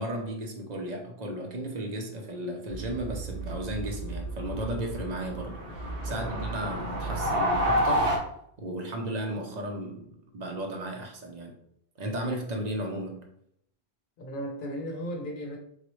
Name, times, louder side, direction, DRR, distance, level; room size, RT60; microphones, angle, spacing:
voice 1, 0.0-8.1 8.6-11.6 12.0-13.3, right 1 dB, 50° right, 2 dB, 0.7 m, -34 dB
sound 1, 2.7-8.2, equal, 85° right, 1.1 m, -30 dB
voice 2, 6.1-6.8 14.2-15.6, equal, 55° left, 1 dB, 0.8 m, -36 dB
3.9 x 2.1 x 3.0 m, 0.71 s
omnidirectional pair, 1.1 m